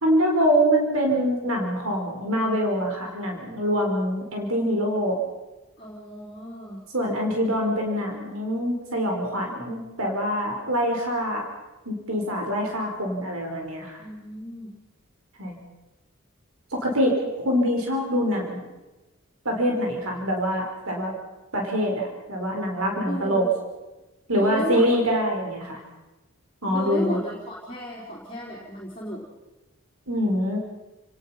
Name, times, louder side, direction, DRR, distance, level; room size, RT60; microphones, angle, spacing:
voice 1, 0.0-5.2 6.9-11.5 11.9-14.0 15.4-15.6 16.7-18.6 19.4-21.1 21.5-23.4 24.3-25.8 26.6-27.2 30.1-30.6, equal, 85° right, 1 dB, 4.5 m, -24 dB
voice 2, 5.8-6.8 14.0-14.7 23.0-23.5 24.3-24.9 26.7-29.2, equal, 25° left, -5 dB, 4.0 m, -34 dB
30.0 x 18.5 x 5.8 m, 1.1 s
head